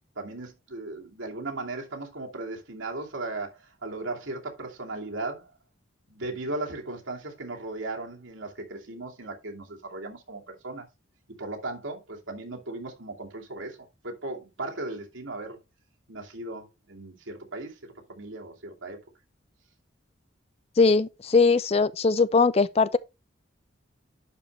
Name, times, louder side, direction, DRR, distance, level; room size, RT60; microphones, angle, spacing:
voice 1, 0.2-5.5 6.1-10.9 11.4-15.6 16.1-17.8 18.1-19.0, right 2 dB, 85° right, 2.6 m, -37 dB
voice 2, 20.8-23.0, left 4 dB, 30° left, 0.4 m, -21 dB
11.0 x 5.1 x 3.3 m
head